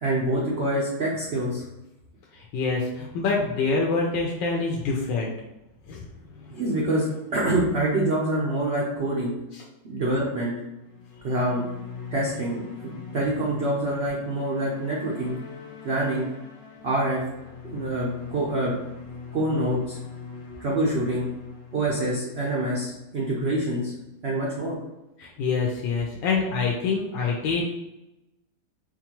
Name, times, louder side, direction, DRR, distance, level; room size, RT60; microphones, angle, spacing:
voice 1, 0.0-1.6 6.5-9.3 9.8-10.5 11.2-11.6 12.1-15.3 15.8-16.3 16.8-17.2 17.7-18.7 19.3-20.0 20.6-21.3 21.7-23.9 24.2-24.8, right 1 dB, 75° right, -4 dB, 0.5 m, -26 dB
voice 2, 2.3-5.3 5.9-6.0 9.5-9.6 13.0-13.2 25.2-27.6, left 4 dB, 85° left, -2 dB, 1.3 m, -26 dB
sound 1, 10.8-23.2, left 5 dB, 65° left, 1.0 m, -42 dB
4.2 x 2.3 x 2.9 m, 0.95 s
omnidirectional pair, 1.9 m